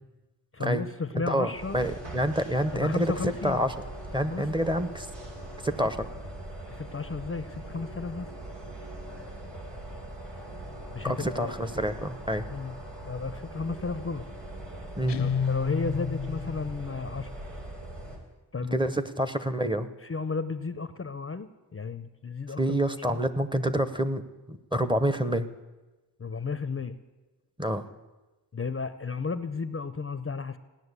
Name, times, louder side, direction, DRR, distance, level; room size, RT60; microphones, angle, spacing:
voice 1, 0.5-1.8 2.7-3.6 4.3-4.4 6.7-8.3 10.9-11.5 12.5-12.7 13.1-14.3 15.2-17.3 18.5-18.8 20.0-23.2 26.2-27.0 28.5-30.6, left 4 dB, 30° left, 12 dB, 0.6 m, -33 dB
voice 2, 1.3-3.7 4.1-5.1 5.6-6.0 11.0-12.4 15.0-15.2 18.7-19.9 22.6-24.2 24.5-25.5 27.6-27.8, right 1 dB, 10° right, 11 dB, 0.8 m, -27 dB
sound 1, 1.5-18.2, right 1 dB, 90° right, 3.4 m, -41 dB
Guitar, 15.1-16.8, left 7 dB, 75° left, 0.8 m, -29 dB
16.0 x 10.5 x 8.1 m, 1.1 s
wide cardioid pair, 100°, 42 cm